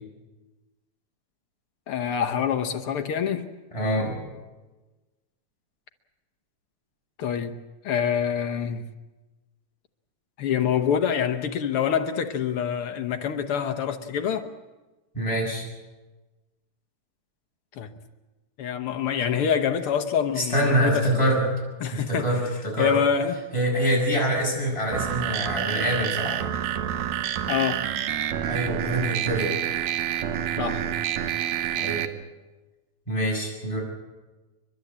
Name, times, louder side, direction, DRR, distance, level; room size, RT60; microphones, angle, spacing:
voice 1, 1.9-3.5 7.2-7.6 7.8-8.9 10.4-14.5 17.8-17.9 18.6-21.4 21.8-22.3 22.8-23.4 27.5-27.9 30.6-30.9, left 8 dB, 60° left, 1.6 m, -26 dB
voice 2, 3.7-4.2 15.1-15.6 20.4-21.4 21.9-22.9 23.5-26.5 28.5-29.6 31.7-32.1 33.1-33.8, right 1 dB, 10° left, 6.7 m, -25 dB
sound 1, 24.9-32.1, right 10 dB, 75° right, 2.1 m, -28 dB
30.0 x 12.0 x 8.6 m
omnidirectional pair, 3.3 m